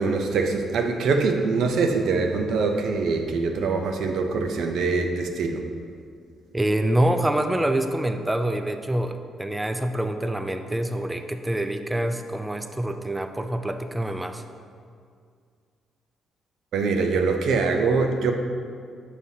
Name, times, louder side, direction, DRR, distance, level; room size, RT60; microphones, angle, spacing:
voice 1, 0.0-5.6 16.7-18.3, right 4 dB, 75° right, 4 dB, 0.5 m, -23 dB
voice 2, 6.5-14.4, right 1 dB, 10° right, 7 dB, 0.3 m, -26 dB
6.4 x 5.5 x 2.7 m, 2.2 s
cardioid pair, 90°, 0 cm